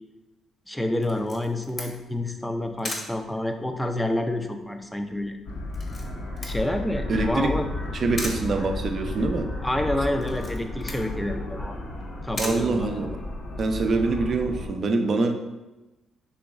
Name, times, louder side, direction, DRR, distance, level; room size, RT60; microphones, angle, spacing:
voice 1, 0.7-5.3 6.4-7.7 9.6-11.8 12.2-13.0, left 1 dB, 10° left, 5 dB, 0.4 m, -28 dB
Camera, 1.0-13.5, left 2 dB, 40° left, 0.9 m, -40 dB
sound 1, 5.4-14.7, left 1 dB, 70° left, 0.8 m, -33 dB
voice 2, 7.1-7.5 7.9-9.5 12.4-13.1 13.6-15.3, right 3 dB, 50° right, 6 dB, 0.5 m, -24 dB
4.0 x 3.0 x 3.5 m, 1.1 s
cardioid pair, 90°, 0 cm